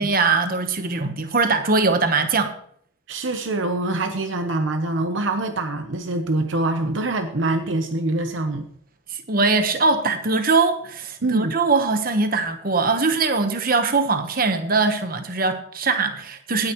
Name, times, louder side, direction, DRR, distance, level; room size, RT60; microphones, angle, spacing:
voice 1, 0.0-2.5 9.1-16.7, right 3 dB, 45° right, 1.1 m, -21 dB
voice 2, 3.1-8.7 11.2-11.6, right 2 dB, 65° right, 0.9 m, -24 dB
17.0 x 9.7 x 3.1 m
head